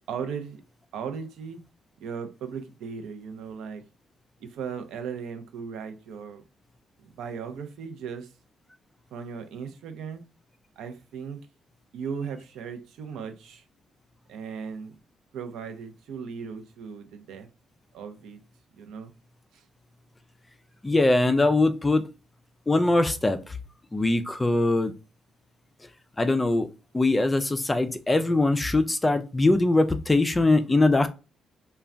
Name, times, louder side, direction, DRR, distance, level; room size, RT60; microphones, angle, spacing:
voice 1, 0.1-0.6 0.9-1.6 2.0-3.8 4.4-6.4 7.1-8.3 9.1-10.2 10.8-11.4 11.9-13.6 14.3-15.0 15.3-17.5 17.9-18.4 18.8-19.1 19.5-19.6, right 6 dB, 85° right, 0.6 m, -37 dB
voice 2, 20.8-22.1 22.7-23.6 23.9-24.9 26.2-26.7 26.9-31.1, left 2 dB, 15° left, 0.3 m, -22 dB
2.5 x 2.2 x 3.2 m
cardioid pair, 120°, 0 cm